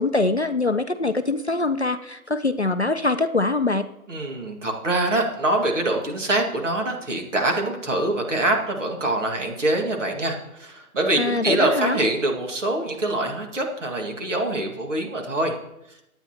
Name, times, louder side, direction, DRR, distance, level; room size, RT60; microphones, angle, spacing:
voice 1, 0.0-3.9 11.2-12.0, left 3 dB, 50° left, 8 dB, 0.5 m, -23 dB
voice 2, 4.1-15.6, right 2 dB, 55° right, 1 dB, 2.0 m, -24 dB
20.0 x 8.9 x 2.9 m, 0.87 s
hypercardioid pair, 180°, 45 cm